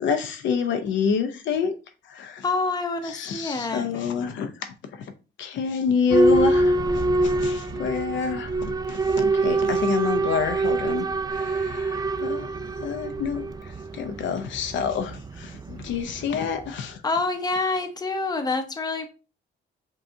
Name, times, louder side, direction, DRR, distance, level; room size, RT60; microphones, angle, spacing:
voice 1, 0.0-1.8 2.1-2.4 3.0-4.7 5.4-6.8 7.2-12.5 12.8-13.4 13.9-17.0, left 6 dB, 70° left, 0.6 m, -27 dB
voice 2, 2.4-4.0 17.0-19.1, left 3 dB, 20° left, 0.7 m, -27 dB
Boat Water vehicle / Alarm, 6.1-16.8, right 2 dB, 20° right, 0.3 m, -25 dB
5.4 x 2.3 x 2.7 m
cardioid pair, 90°, 20 cm